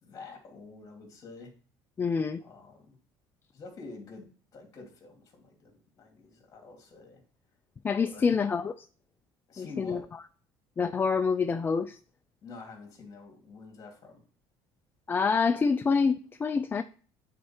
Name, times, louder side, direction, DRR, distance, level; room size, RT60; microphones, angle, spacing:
voice 1, 0.0-1.5 2.4-3.0 3.5-7.2 8.0-8.3 9.5-10.1 12.4-14.2, left 3 dB, 35° left, 2.7 m, -47 dB
voice 2, 2.0-2.4 7.8-8.7 9.6-10.0 10.8-12.0 15.1-16.8, left 5 dB, 20° left, 0.4 m, -26 dB
9.1 x 4.4 x 4.4 m
cardioid pair, 120°, 9 cm